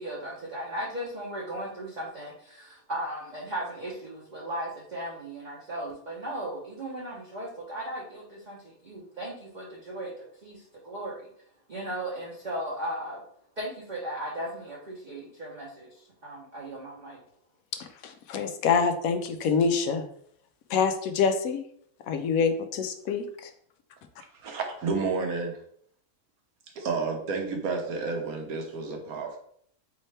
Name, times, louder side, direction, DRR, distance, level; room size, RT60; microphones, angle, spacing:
voice 1, 0.0-11.3 11.7-13.2 13.6-17.2, right 1 dB, 40° right, -5 dB, 0.8 m, -37 dB
voice 2, 17.7-20.1 20.7-21.6 22.1-23.5, left 5 dB, 75° left, 7 dB, 1.0 m, -26 dB
voice 3, 24.4-25.6 26.8-29.4, right 4 dB, 75° right, 3 dB, 1.3 m, -30 dB
4.3 x 3.5 x 3.3 m, 0.64 s
omnidirectional pair, 1.5 m